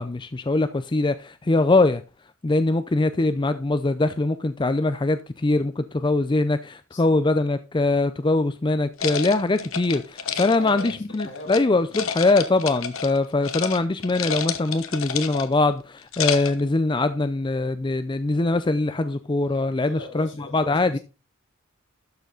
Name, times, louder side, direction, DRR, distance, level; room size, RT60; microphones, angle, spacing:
voice 1, 0.0-2.0 2.4-21.0, left 2 dB, 20° left, 0.4 m, -22 dB
voice 2, 6.9-7.2 10.3-11.9 19.8-21.0, left 2 dB, 55° left, 3.5 m, -41 dB
sound 1, 9.0-11.6 11.9-13.2 13.4-13.8 14.0-15.6 16.0-16.6, left 7 dB, 70° left, 1.2 m, -30 dB
12.0 x 6.8 x 3.9 m
head